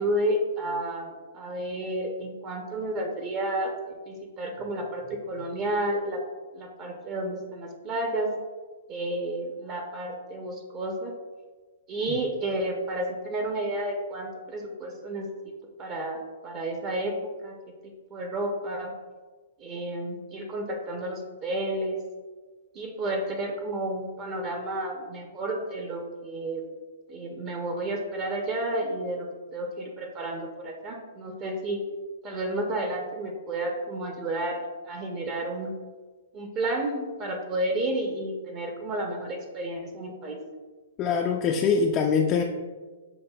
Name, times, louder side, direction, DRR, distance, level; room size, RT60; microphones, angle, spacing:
voice 1, 0.0-6.2 6.5-8.3 8.9-11.1 11.9-15.3 15.8-16.2 16.4-17.1 17.4-17.6 18.1-18.9 19.6-22.0 22.7-26.7 27.1-31.8 32.2-35.7 36.3-40.4, right 1 dB, 30° right, 2 dB, 0.6 m, -31 dB
voice 2, 41.0-42.4, left 5 dB, 30° left, 1 dB, 0.3 m, -23 dB
7.2 x 2.5 x 2.2 m, 1.4 s
hypercardioid pair, 135°, 0 cm